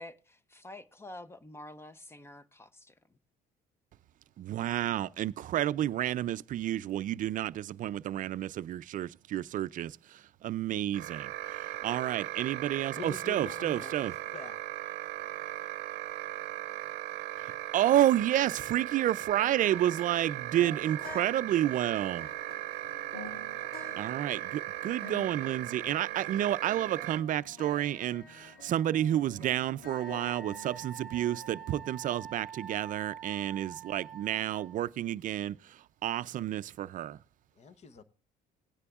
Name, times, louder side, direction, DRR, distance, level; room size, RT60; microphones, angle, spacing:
voice 1, 0.0-3.2, left 1 dB, 15° left, 0.7 m, -48 dB
voice 2, 4.4-14.1 17.4-22.3 24.0-37.2, right 12 dB, 50° right, 0.4 m, -30 dB
sound 1, 10.9-27.2, right 14 dB, 90° right, 0.6 m, -38 dB
voice 3, 13.0-14.6 37.6-38.0, left 5 dB, 40° left, 0.9 m, -45 dB
sound 2, 19.4-32.4, left 3 dB, 65° left, 2.7 m, -50 dB
Wind instrument woodwind instrument, 29.9-34.9, right 9 dB, ahead, 1.7 m, -45 dB
17.5 x 9.7 x 2.4 m
cardioid pair, 110°, 17 cm